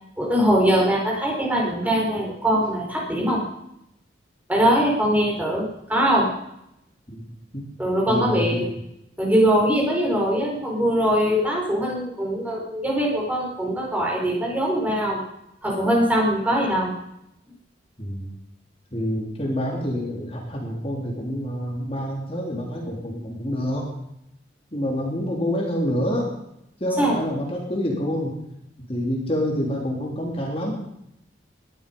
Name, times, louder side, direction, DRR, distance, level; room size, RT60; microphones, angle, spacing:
voice 1, 0.2-3.4 4.5-6.3 7.8-8.7 9.2-15.2 15.6-16.9 27.0-27.2, equal, 10° right, -2 dB, 4.8 m, -22 dB
voice 2, 8.1-8.7 18.0-18.3 18.9-23.8 24.7-26.3 26.8-28.3 28.9-30.7, equal, 30° left, -1 dB, 3.3 m, -27 dB
19.5 x 12.5 x 5.4 m, 0.80 s
head